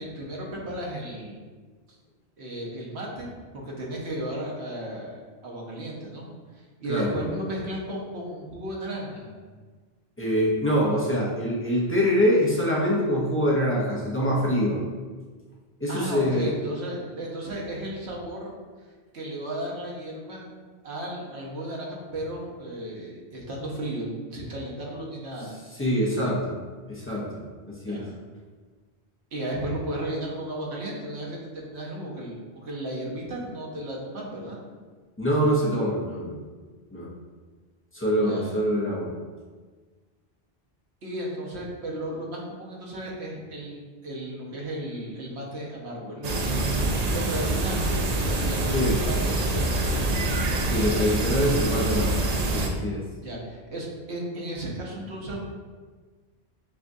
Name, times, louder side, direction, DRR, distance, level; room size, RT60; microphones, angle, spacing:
voice 1, 0.0-1.4 2.4-6.3 6.6-9.3 15.9-18.5 19.1-20.5 20.8-25.5 27.8-28.1 29.3-34.6 38.2-38.5 41.0-46.4 47.1-49.8 53.2-55.4, right 1 dB, 80° right, -3 dB, 1.2 m, -34 dB
voice 2, 10.2-14.8 15.8-16.5 25.7-26.6 26.9-28.0 35.2-36.4 36.9-37.1 37.9-39.1 48.7-49.0 50.7-52.2 52.5-53.0, equal, 15° left, -6 dB, 0.7 m, -24 dB
sound 1, 46.2-52.7, right 2 dB, 50° right, 0.5 m, -25 dB
7.0 x 2.4 x 2.6 m, 1.5 s
omnidirectional pair, 1.1 m